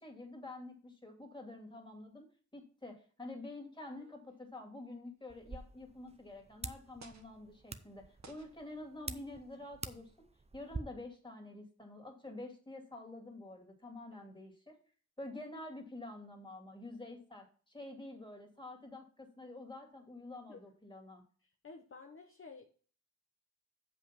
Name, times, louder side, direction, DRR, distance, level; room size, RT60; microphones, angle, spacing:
voice 1, 0.0-10.3 10.5-14.8 15.2-21.2, left 2 dB, 15° left, 2 dB, 2.5 m, -48 dB
sound 1, 4.0-4.9 5.8-5.9 7.0-7.4 8.2-8.7 9.5-9.8, right 4 dB, 65° right, 1.5 m, -59 dB
sound 2, 5.3-10.8, right 3 dB, 20° right, 0.6 m, -48 dB
voice 2, 21.4-22.7, left 4 dB, 45° left, 3 dB, 0.9 m, -52 dB
7.3 x 5.4 x 5.7 m, 0.42 s
wide cardioid pair, 80°, 30 cm